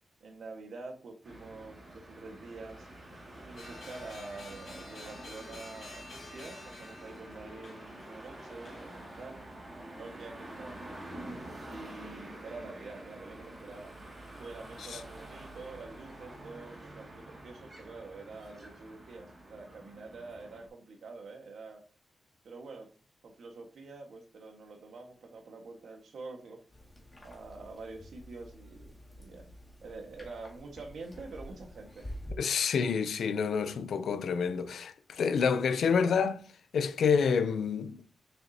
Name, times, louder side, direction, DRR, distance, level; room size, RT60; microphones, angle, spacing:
voice 1, 0.2-2.9 3.5-9.4 10.0-13.9 14.4-21.8 22.4-22.9 23.2-26.6 27.2-29.5 29.8-32.1, right 3 dB, 70° right, 1.6 m, -46 dB
sound 1, 1.2-20.7, right 1 dB, 20° right, 2.3 m, -48 dB
sound 2, 3.6-9.4, left 2 dB, 55° left, 2.4 m, -50 dB
sound 3, 26.7-32.3, equal, 15° left, 2.1 m, -48 dB
voice 2, 32.4-36.4 36.7-38.0, left 6 dB, 85° left, 0.6 m, -28 dB
6.8 x 6.5 x 2.8 m
wide cardioid pair, 165°, 0 cm